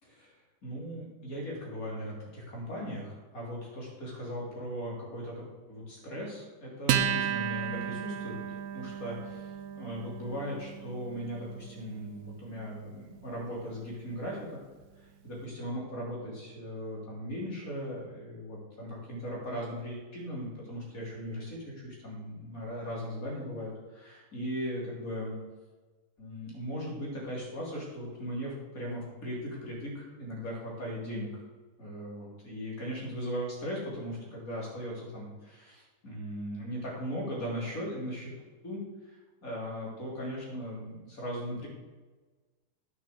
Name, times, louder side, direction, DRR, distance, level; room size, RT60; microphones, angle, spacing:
voice 1, 0.0-0.3 0.6-8.3 8.7-14.6 15.0-25.4 26.2-31.4 31.8-38.3 38.6-41.7, equal, 65° left, -3 dB, 3.9 m, -38 dB
Acoustic guitar, 6.9-13.7, right 9 dB, 65° right, 1.0 m, -34 dB
9.4 x 6.7 x 7.8 m, 1.3 s
omnidirectional pair, 1.6 m